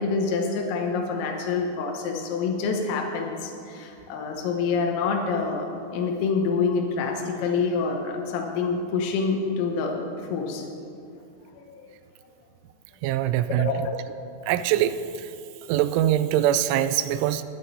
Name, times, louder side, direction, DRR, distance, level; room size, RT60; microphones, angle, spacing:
voice 1, 0.0-5.7 5.9-10.7 11.6-11.9 13.6-13.8, left 4 dB, 85° left, 2 dB, 3.7 m, -27 dB
voice 2, 13.0-13.9 14.5-15.3 15.7-17.4, right 12 dB, 85° right, 12 dB, 2.8 m, -23 dB
20.5 x 8.7 x 4.1 m, 2.6 s
omnidirectional pair, 5.8 m